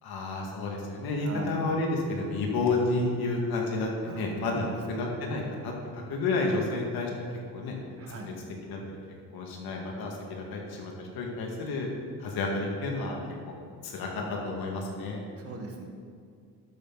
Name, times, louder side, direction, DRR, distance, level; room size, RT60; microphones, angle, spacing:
voice 1, 0.0-7.1 7.5-7.8 8.1-8.2 8.7-9.0 9.3-11.9 12.2-13.2 13.8-15.2, left 2 dB, 70° left, 0 dB, 2.2 m, -31 dB
voice 2, 1.2-1.6 4.1-4.2 4.5-4.8 8.0-8.3 15.4-15.9, right 3 dB, 35° right, 2 dB, 1.7 m, -40 dB
12.0 x 9.2 x 4.1 m, 2.3 s
cardioid pair, 150°, 38 cm